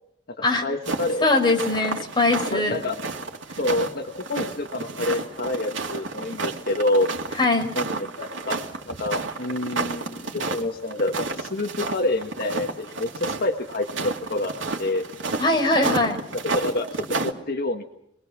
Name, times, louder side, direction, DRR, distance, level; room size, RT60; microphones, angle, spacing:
voice 1, 0.6-1.3 2.5-3.0 3.6-7.1 7.8-8.6 8.9-14.5 14.8-15.1 16.4-17.8, left 2 dB, 55° left, 3 dB, 1.6 m, -27 dB
sound 1, 0.8-17.3, right 3 dB, 90° right, 2.5 m, -31 dB
voice 2, 1.2-2.8 7.4-7.7 15.4-16.2, left 2 dB, 25° left, 2 dB, 4.9 m, -21 dB
25.5 x 21.5 x 6.1 m, 0.77 s
head